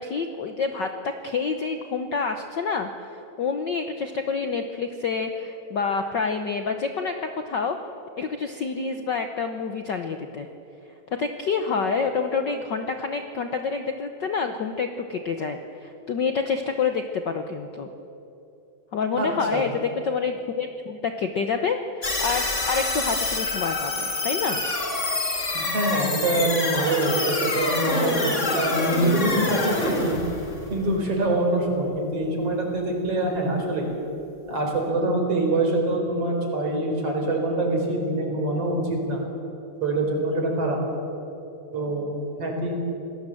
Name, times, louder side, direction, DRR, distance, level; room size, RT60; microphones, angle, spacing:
voice 1, 0.0-7.8 8.2-10.5 11.1-17.9 18.9-24.6, left 5 dB, 85° left, 6 dB, 0.9 m, -28 dB
voice 2, 19.2-19.6 25.5-30.2 30.7-33.9 34.5-39.2 39.8-40.8 41.7-42.7, right 2 dB, 50° right, 1 dB, 5.1 m, -25 dB
sound 1, 22.0-31.3, left 2 dB, 25° left, 2.4 m, -27 dB
28.0 x 19.0 x 7.8 m, 2.9 s
omnidirectional pair, 3.4 m